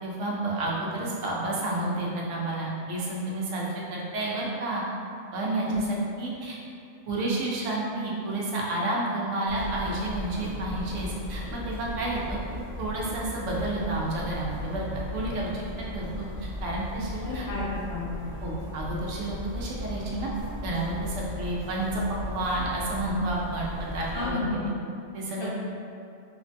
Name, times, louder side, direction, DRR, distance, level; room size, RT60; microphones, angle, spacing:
voice 1, 0.0-4.8 5.3-6.6 7.1-12.4 12.8-16.2 16.6-17.4 18.4-20.3 20.6-24.4 25.1-25.5, right 2 dB, 75° right, -4 dB, 0.9 m, -30 dB
sound 1, 9.5-24.3, left 1 dB, 15° left, 0.8 m, -37 dB
voice 2, 17.2-18.1 24.1-24.7 25.4-25.5, left 2 dB, 65° left, -5 dB, 0.8 m, -31 dB
3.1 x 2.1 x 2.6 m, 2.5 s
omnidirectional pair, 1.3 m